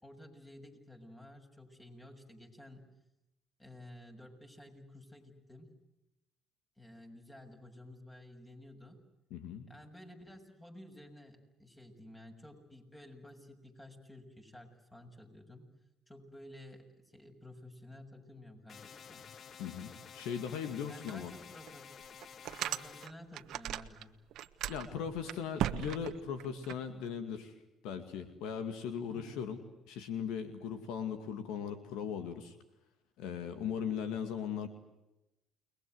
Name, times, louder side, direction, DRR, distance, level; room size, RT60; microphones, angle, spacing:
voice 1, 0.0-2.8 3.6-5.7 6.8-9.0 9.7-15.6 16.1-19.2 20.9-21.9 22.6-24.1 29.1-29.4, left 1 dB, 15° left, 4 dB, 7.1 m, -53 dB
voice 2, 9.3-9.7 19.6-21.3 24.7-27.5 27.8-29.6 29.9-32.6 33.2-34.7, left 7 dB, 75° left, 9 dB, 2.3 m, -38 dB
sound 1, 18.7-23.1, left 7 dB, 50° left, 1.0 m, -52 dB
sound 2, 21.1-21.2 21.7-21.8 22.2-24.0 24.3-26.8, right 12 dB, 70° right, 1.3 m, -37 dB
29.5 x 21.5 x 8.0 m, 0.93 s
supercardioid pair, 70°, 0 cm